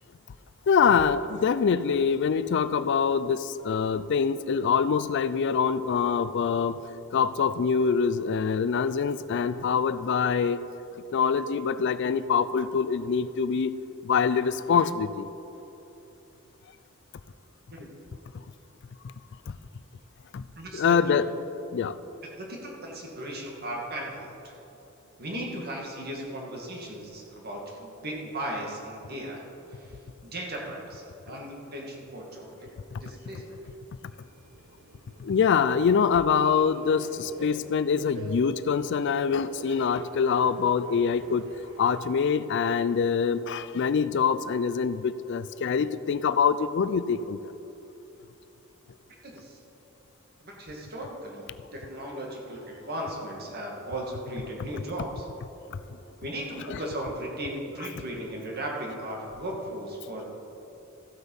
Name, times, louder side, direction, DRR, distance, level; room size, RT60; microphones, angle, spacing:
voice 1, 0.7-6.8 7.1-10.6 11.1-13.7 14.0-15.3 20.3-20.4 20.7-21.3 21.7-22.0 32.9-33.0 35.2-41.5 41.8-47.5 55.7-55.8 56.7-56.8, left 6 dB, 60° left, 14 dB, 0.4 m, -24 dB
voice 2, 20.5-21.2 22.4-24.5 25.2-29.5 29.7-32.5 33.0-33.6 49.2-49.6 50.4-55.3 56.2-60.3, right 1 dB, 50° right, -1 dB, 2.0 m, -37 dB
Subway metro underground, 34.1-42.0, right 1 dB, 80° right, 1.1 m, -46 dB
14.0 x 7.9 x 5.4 m, 3.0 s
head